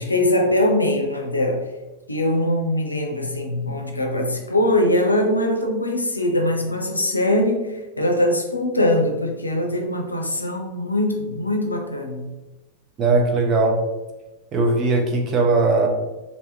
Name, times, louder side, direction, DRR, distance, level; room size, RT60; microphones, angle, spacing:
voice 1, 0.0-1.7 2.1-12.2, left 1 dB, 80° left, 2 dB, 0.5 m, -22 dB
voice 2, 13.0-13.7 14.5-15.9, right 3 dB, 30° right, 1 dB, 0.7 m, -19 dB
3.3 x 2.7 x 2.7 m, 1.1 s
figure-of-eight pair, 90°, 0 cm